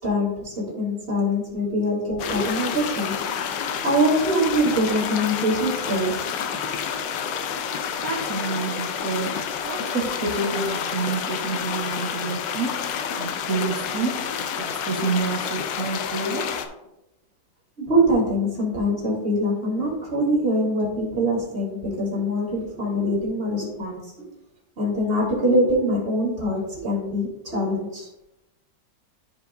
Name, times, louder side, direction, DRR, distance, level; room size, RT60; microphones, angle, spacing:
voice 1, 0.0-3.3 3.8-6.3 17.8-24.3 24.8-28.1, equal, 35° right, -5 dB, 3.6 m, -23 dB
sound 1, 2.2-16.7, left 7 dB, 75° left, 1.4 m, -29 dB
voice 2, 8.0-16.6, right 4 dB, 50° right, -6 dB, 2.0 m, -29 dB
13.5 x 5.3 x 2.6 m, 0.92 s
omnidirectional pair, 2.0 m